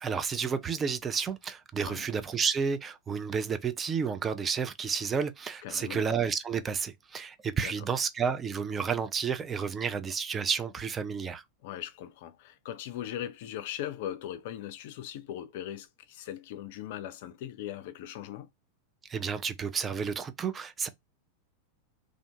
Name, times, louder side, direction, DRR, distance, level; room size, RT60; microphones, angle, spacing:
voice 1, 0.0-11.4 19.1-20.9, right 6 dB, 20° right, 0.3 m, -31 dB
voice 2, 5.6-6.1 7.6-7.7 11.6-18.5, left 11 dB, 50° left, 0.4 m, -39 dB
2.5 x 2.4 x 2.2 m
figure-of-eight pair, 90°, 0 cm